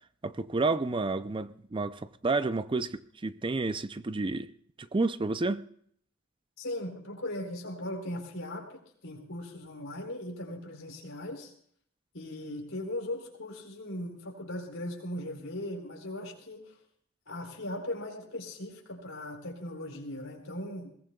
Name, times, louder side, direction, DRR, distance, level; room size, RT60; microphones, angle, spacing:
voice 1, 0.2-4.5 4.8-5.6, right 3 dB, 25° right, 0.5 m, -30 dB
voice 2, 6.6-11.5 12.1-16.7 17.3-20.9, left 1 dB, 80° left, 4.0 m, -38 dB
21.5 x 18.5 x 2.3 m
head